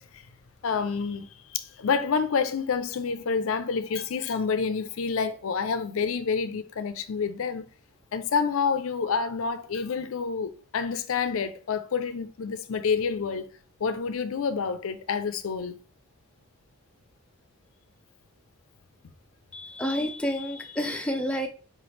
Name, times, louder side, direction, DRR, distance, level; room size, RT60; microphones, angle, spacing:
voice 1, 0.6-7.7 8.1-13.5 13.8-15.7, left 5 dB, 65° left, 0.4 m, -28 dB
voice 2, 19.5-21.5, equal, 5° left, 0.4 m, -29 dB
4.7 x 3.0 x 3.2 m
head